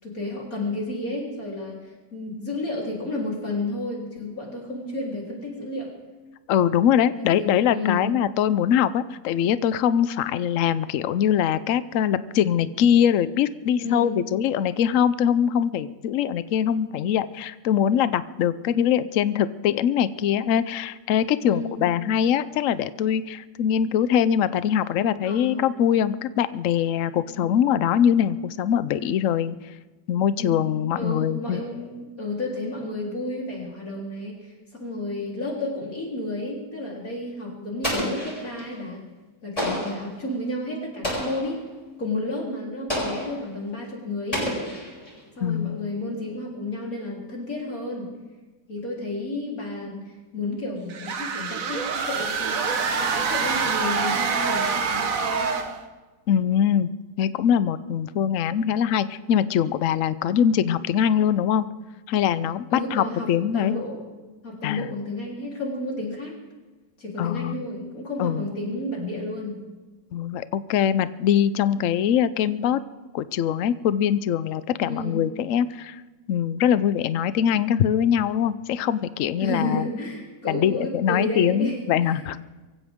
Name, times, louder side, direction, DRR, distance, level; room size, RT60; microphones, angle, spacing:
voice 1, 0.0-5.9 7.2-8.0 13.8-14.2 21.5-21.9 25.2-25.6 27.3-27.6 30.4-30.6 30.9-39.0 39.4-41.6 42.0-44.5 45.4-48.1 48.7-55.5 62.7-64.1 64.4-66.3 67.0-69.6 74.8-75.2 79.4-82.2, left 2 dB, 45° left, -3 dB, 4.2 m, -31 dB
voice 2, 6.5-29.5 30.1-31.6 45.4-45.9 56.3-56.9 57.2-61.7 62.1-63.8 64.6-64.8 67.2-67.6 68.2-68.5 70.1-72.8 73.1-76.0 76.3-79.9 80.5-82.4, left 9 dB, 80° left, 14 dB, 0.7 m, -22 dB
Explosion, 37.8-38.7 39.6-40.1 41.0-41.6 42.9-43.4 44.3-45.2, equal, 15° left, 7.6 m, -29 dB
sound 1, 50.9-55.8, right 5 dB, 50° right, 1.4 m, -26 dB
24.5 x 15.5 x 3.6 m, 1.2 s
omnidirectional pair, 2.1 m